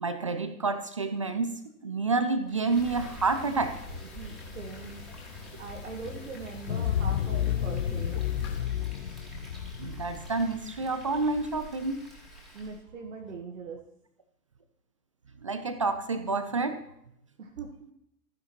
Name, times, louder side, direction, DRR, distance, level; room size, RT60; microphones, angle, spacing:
voice 1, 0.0-3.8 7.3-7.4 9.8-12.0 15.4-16.8, right 3 dB, 25° right, 9 dB, 0.4 m, -29 dB
Frying (food), 2.5-12.8, right 2 dB, ahead, 2.9 m, -48 dB
sound 1, 2.7-8.6, left 4 dB, 25° left, 3.7 m, -45 dB
voice 2, 4.1-8.2 12.5-13.8 17.4-17.9, right 4 dB, 55° right, 2 dB, 1.6 m, -42 dB
sound 2, 6.7-11.4, left 10 dB, 45° left, 0.5 m, -31 dB
14.5 x 10.5 x 3.0 m, 0.76 s
figure-of-eight pair, 120°, 45 cm